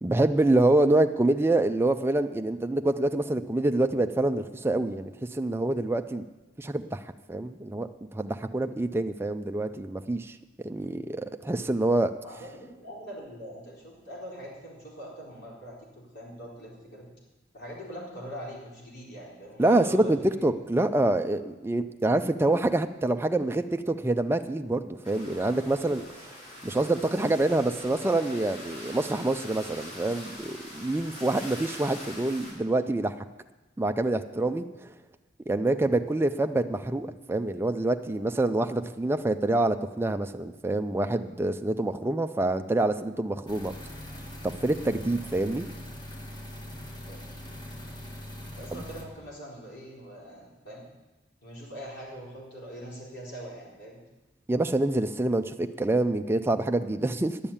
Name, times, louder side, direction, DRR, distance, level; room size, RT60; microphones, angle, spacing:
voice 1, 0.0-6.3 6.6-7.0 7.3-10.3 10.6-12.1 19.6-26.3 26.6-33.1 33.8-34.9 35.5-43.7 44.4-45.7 48.7-48.8 54.5-57.4, right 2 dB, 10° right, 7 dB, 0.4 m, -26 dB
voice 2, 12.2-17.1 17.5-20.3 47.1-47.2 48.5-50.9 51.4-54.0, equal, 60° left, -4 dB, 4.2 m, -42 dB
sound 1, 25.0-32.5, left 1 dB, 40° left, 4.6 m, -43 dB
sound 2, 43.5-49.1, left 1 dB, 25° left, 1.5 m, -41 dB
11.0 x 7.2 x 8.6 m, 1.1 s
head